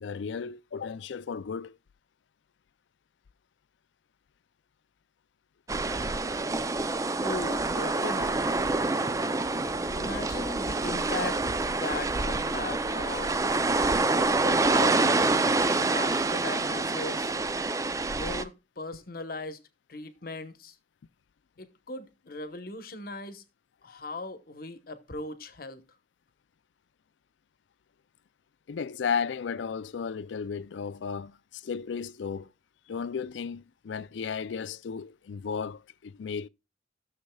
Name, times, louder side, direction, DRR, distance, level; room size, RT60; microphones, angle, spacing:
voice 1, 0.0-1.8 15.6-16.2 28.7-32.5 32.9-36.5, left 6 dB, 90° left, 0.4 m, -34 dB
sound 1, 5.7-18.4, right 3 dB, 20° right, 0.4 m, -27 dB
voice 2, 7.2-8.5 9.9-11.4 11.8-13.5 14.4-15.0 15.9-17.4 18.1-19.6 19.9-20.7 21.6-23.4 23.8-25.8, left 2 dB, 55° left, 1.0 m, -38 dB
16.5 x 6.6 x 2.2 m
head